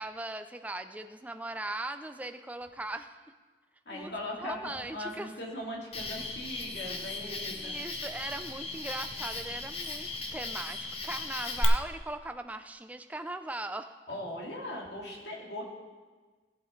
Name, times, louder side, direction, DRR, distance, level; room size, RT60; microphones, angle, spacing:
voice 1, 0.0-3.2 3.9-4.1 4.4-5.3 7.5-13.9, right 2 dB, 10° right, 8 dB, 0.4 m, -39 dB
voice 2, 3.9-7.8 14.1-15.6, left 1 dB, 70° left, -3 dB, 2.4 m, -39 dB
Cricket, 5.9-11.6, left 2 dB, 35° left, 1.0 m, -37 dB
18.0 x 8.1 x 3.2 m, 1.4 s
head